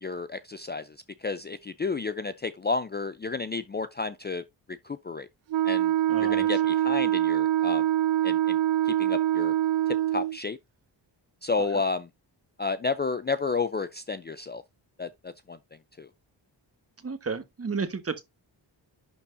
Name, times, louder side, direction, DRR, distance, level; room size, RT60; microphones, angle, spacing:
voice 1, 0.0-1.0 1.2-5.3 5.6-5.9 6.2-7.8 8.2-8.6 8.9-9.5 9.9-10.6 11.4-12.1 12.6-14.6 15.0-15.6 16.0-16.1, left 4 dB, 25° left, 0.4 m, -31 dB
Wind instrument woodwind instrument, 5.5-10.4, right 13 dB, 85° right, 0.6 m, -24 dB
voice 2, 6.1-6.5 17.0-18.2, right 5 dB, 30° right, 1.2 m, -32 dB
11.0 x 4.3 x 2.6 m
wide cardioid pair, 120°, 44 cm